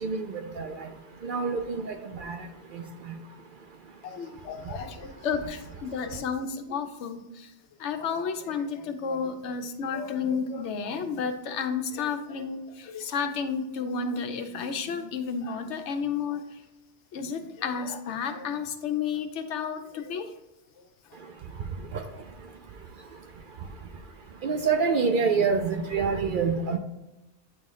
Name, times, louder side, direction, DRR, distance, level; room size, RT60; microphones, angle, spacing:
voice 1, 1.2-1.9 2.2-2.4 2.7-2.8 24.4-26.8, right 5 dB, 60° right, 6 dB, 0.6 m, -26 dB
voice 2, 4.0-7.5 7.8-16.4 17.1-20.3, left 6 dB, 80° left, 7 dB, 1.0 m, -32 dB
8.7 x 3.1 x 3.8 m, 0.98 s
omnidirectional pair, 1.2 m